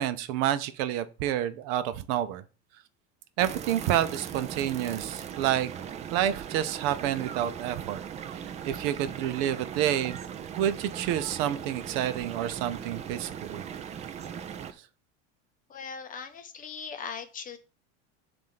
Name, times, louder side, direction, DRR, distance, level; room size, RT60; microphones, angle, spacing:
voice 1, 0.0-2.4 3.4-5.7 6.1-8.0 8.7-10.2 10.6-13.6, right 11 dB, 60° right, 12 dB, 0.6 m, -29 dB
sound 1, 3.4-14.7, right 8 dB, 20° right, 0.4 m, -39 dB
voice 2, 15.7-17.6, left 6 dB, 25° left, 9 dB, 0.7 m, -39 dB
7.4 x 2.6 x 5.6 m, 0.34 s
supercardioid pair, 135°, 33 cm